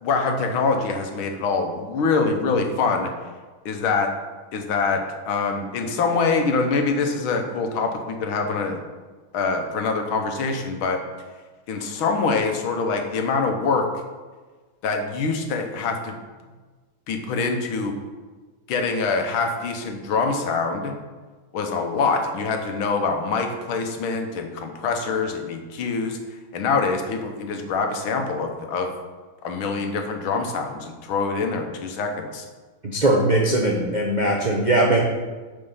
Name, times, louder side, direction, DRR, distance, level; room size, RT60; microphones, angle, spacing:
voice 1, 0.0-3.1 3.7-4.1 4.5-8.8 9.3-11.0 11.7-13.9 14.8-16.2 17.1-17.9 18.7-20.9 21.5-26.2 26.5-28.9 29.4-32.5, left 4 dB, 80° left, 4 dB, 1.8 m, -24 dB
voice 2, 32.8-35.0, right 1 dB, 60° right, -2 dB, 0.4 m, -20 dB
8.8 x 4.6 x 5.5 m, 1.4 s
omnidirectional pair, 2.3 m